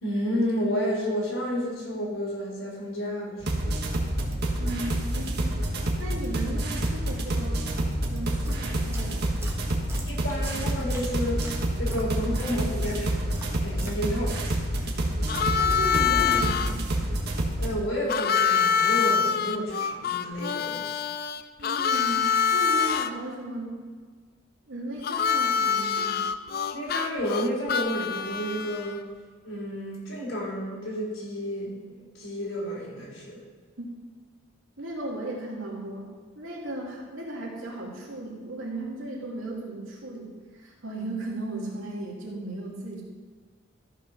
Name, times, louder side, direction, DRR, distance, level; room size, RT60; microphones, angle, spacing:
voice 1, 0.0-3.8 10.0-11.5 11.8-14.4 17.6-21.0 26.7-29.0 29.4-33.4, equal, 90° left, -5 dB, 3.5 m, -31 dB
sound 1, 3.4-17.7, right 1 dB, 50° right, 1.4 m, -28 dB
voice 2, 4.6-5.7 6.0-7.7 8.1-9.3 15.6-17.0 21.6-23.8 24.7-26.2 33.8-33.9 34.8-36.1 36.4-43.0, right 1 dB, 80° right, -2 dB, 2.4 m, -36 dB
sound 2, 8.4-14.9, right 1 dB, 15° right, 1.2 m, -44 dB
Harmonica, 15.3-16.7 18.1-23.1 25.0-29.0, left 7 dB, 45° left, 0.4 m, -25 dB
13.5 x 4.8 x 6.0 m, 1.5 s
head